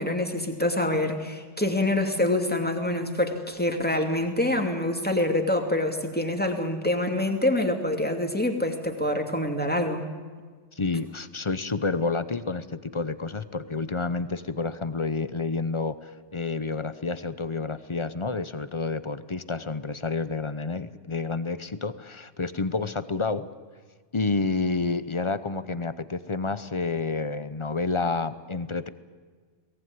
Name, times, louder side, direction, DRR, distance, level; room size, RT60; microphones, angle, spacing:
voice 1, 0.0-10.0, left 1 dB, 5° left, 4 dB, 2.5 m, -26 dB
voice 2, 10.7-23.5 24.1-28.9, left 3 dB, 30° left, 14 dB, 0.6 m, -29 dB
22.5 x 18.5 x 9.6 m, 1.5 s
omnidirectional pair, 1.5 m